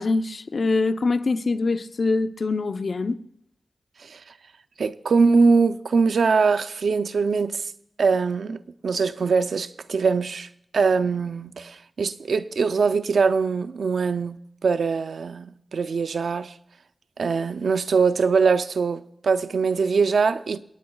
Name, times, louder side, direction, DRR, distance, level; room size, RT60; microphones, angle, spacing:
voice 1, 0.0-3.2, left 3 dB, 65° left, 0.7 m, -24 dB
voice 2, 4.8-7.7 8.0-10.5 10.7-16.5 17.2-20.6, right 5 dB, 90° right, 0.5 m, -22 dB
27.5 x 9.5 x 2.3 m
cardioid pair, 60°, 0 cm